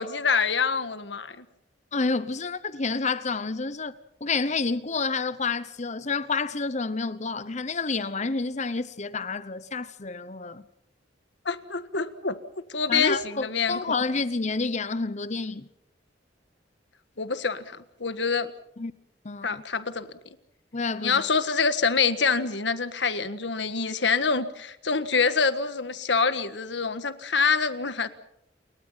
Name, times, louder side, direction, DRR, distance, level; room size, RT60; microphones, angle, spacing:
voice 1, 0.0-1.4 11.4-12.4 12.7-14.0 17.2-18.5 19.4-20.1 21.0-28.1, left 5 dB, 70° left, 1.6 m, -26 dB
voice 2, 1.9-3.9 4.2-10.6 12.9-15.7 18.8-18.9 19.2-19.6 20.7-21.2, left 4 dB, 40° left, 0.9 m, -29 dB
29.0 x 22.5 x 5.8 m
head